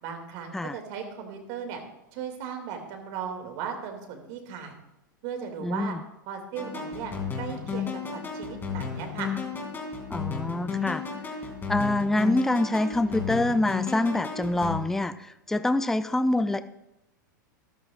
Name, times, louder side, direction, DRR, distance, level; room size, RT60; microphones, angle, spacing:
voice 1, 0.0-1.8 2.1-4.7 5.2-6.0 6.3-9.3, right 7 dB, 55° right, 4 dB, 2.4 m, -37 dB
voice 2, 5.6-6.0 10.1-11.0 11.7-16.6, left 2 dB, 5° left, 12 dB, 0.4 m, -26 dB
sound 1, 6.6-14.8, left 6 dB, 20° left, 2.8 m, -33 dB
13.5 x 12.5 x 2.5 m, 0.88 s
hypercardioid pair, 105°, 11 cm